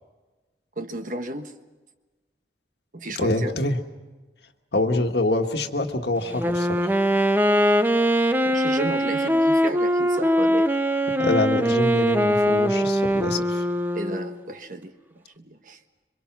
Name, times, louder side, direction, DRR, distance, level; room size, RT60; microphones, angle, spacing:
voice 1, 0.8-1.5 2.9-3.6 8.5-10.7 13.9-15.8, right 1 dB, 50° right, 7 dB, 1.4 m, -33 dB
voice 2, 3.2-3.8 4.7-6.9 11.2-13.6, left 2 dB, 70° left, 5 dB, 1.6 m, -25 dB
Wind instrument woodwind instrument, 6.3-14.4, equal, 10° right, 0.7 m, -22 dB
27.0 x 24.5 x 6.0 m, 1.2 s
head